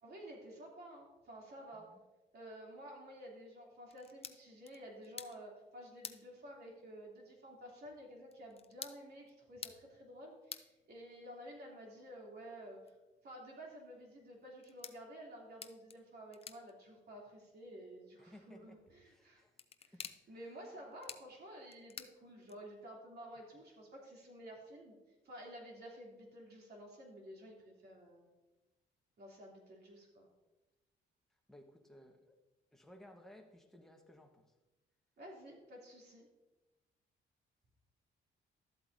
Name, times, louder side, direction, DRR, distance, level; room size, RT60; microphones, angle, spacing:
voice 1, 0.0-1.9 2.3-12.9 13.2-19.4 19.8-19.9 20.3-25.0 25.2-28.3 29.2-30.3 35.2-36.3, equal, 55° right, -1 dB, 3.0 m, -52 dB
sound 1, 3.8-22.9, left 6 dB, 30° left, 0.6 m, -55 dB
voice 2, 18.2-18.8 19.0-19.6 19.9-20.8 31.5-32.4 32.7-34.5, left 1 dB, ahead, 2 dB, 1.2 m, -59 dB
12.5 x 7.9 x 2.7 m, 1.1 s
cardioid pair, 90°, 20 cm